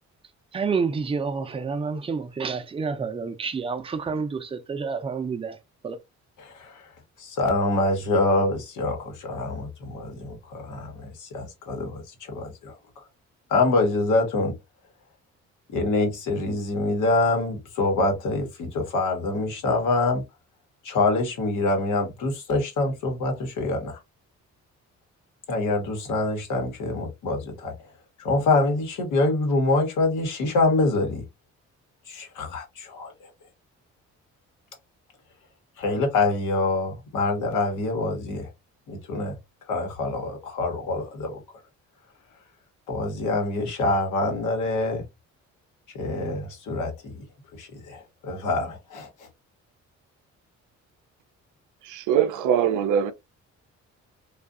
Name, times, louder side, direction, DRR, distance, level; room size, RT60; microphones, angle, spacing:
voice 1, 0.5-5.6 5.8-6.0, right 5 dB, 20° right, 0.4 m, -29 dB
voice 2, 6.4-6.9 7.2-12.7 13.5-14.5 15.7-20.2 20.8-24.0 25.5-27.7 28.2-31.2 32.1-33.1 35.8-38.5 38.9-39.4 39.7-41.4 42.9-45.0 45.9-47.2 47.6-49.3, left 2 dB, 80° left, 1.1 m, -25 dB
voice 3, 51.8-53.1, right 9 dB, 85° right, 0.5 m, -22 dB
2.5 x 2.4 x 2.4 m
cardioid pair, 90°, 30 cm